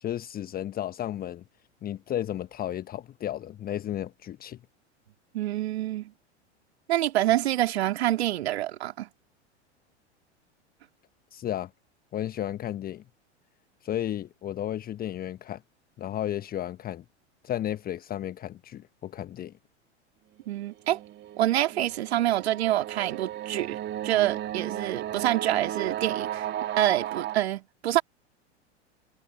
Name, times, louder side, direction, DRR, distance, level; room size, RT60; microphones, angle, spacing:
voice 1, 0.0-1.4 1.8-4.6 11.3-11.7 12.1-13.0 13.8-15.6 16.0-17.0 17.4-19.5, left 11 dB, 25° left, 1.2 m, -33 dB
voice 2, 5.3-6.1 6.9-9.1 20.5-21.0 21.4-23.8 24.0-26.5 26.8-28.0, right 14 dB, 60° right, 2.7 m, -26 dB
sound 1, 20.7-27.4, right 12 dB, 30° right, 2.8 m, -34 dB
figure-of-eight pair, 85°, 35 cm